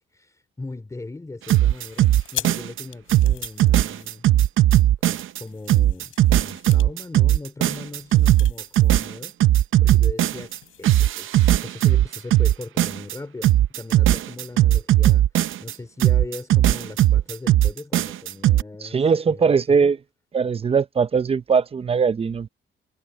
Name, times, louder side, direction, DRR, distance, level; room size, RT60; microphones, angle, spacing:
voice 1, 0.1-4.2 5.0-9.3 9.8-15.2 15.6-19.0 19.3-19.5 19.8-19.9, left 2 dB, 15° left, 3.1 m, -38 dB
sound 1, 1.5-2.8 3.1-5.4 5.7-10.6 10.8-13.1 13.4-15.7 16.0-18.6, right 13 dB, 75° right, 0.7 m, -18 dB
sound 2, 1.6-4.7 5.2-9.1 9.4-9.5 9.9-11.1, left 11 dB, 85° left, 5.7 m, -40 dB
voice 2, 18.8-20.0 20.3-22.5, right 5 dB, 30° right, 0.6 m, -20 dB
cardioid pair, 140°, 21 cm